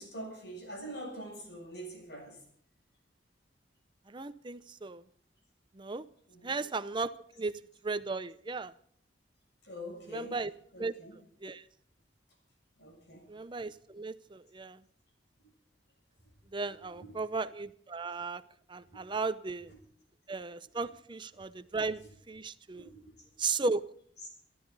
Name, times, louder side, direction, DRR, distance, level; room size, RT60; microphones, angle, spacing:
voice 1, 0.0-2.4 6.3-6.7 9.6-10.4 10.7-11.2 12.8-13.3 16.6-17.2 18.8-19.2 19.7-19.8 20.7-20.9 21.3-21.4 22.7-23.3 24.2-24.3, right 1 dB, 65° left, 1 dB, 7.3 m, -45 dB
voice 2, 4.1-5.0 5.7-6.0 6.4-8.7 10.1-10.5 10.8-10.9 11.4-11.6 13.3-14.8 16.5-18.4 18.7-19.7 20.3-22.9 23.4-23.9, right 3 dB, 25° right, 13 dB, 0.6 m, -36 dB
27.0 x 12.5 x 4.0 m, 0.62 s
head